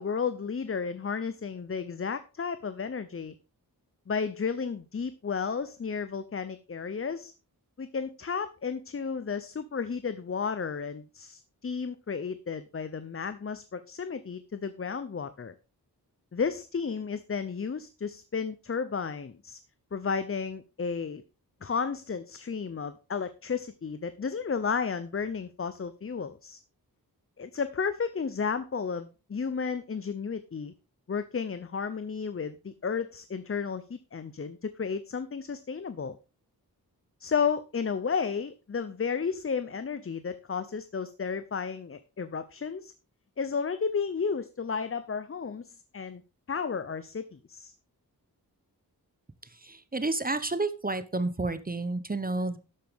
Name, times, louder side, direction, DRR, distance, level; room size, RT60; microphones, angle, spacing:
voice 1, 0.0-3.3 4.1-7.3 7.8-15.5 16.3-19.6 19.9-21.2 21.6-26.6 27.4-30.7 31.1-36.2 37.2-42.9 43.4-46.2 46.5-47.7, left 5 dB, 35° left, 12 dB, 0.7 m, -33 dB
voice 2, 49.4-52.6, right 2 dB, 25° right, 12 dB, 0.9 m, -30 dB
12.0 x 8.6 x 3.6 m, 0.31 s
wide cardioid pair, 120°, 37 cm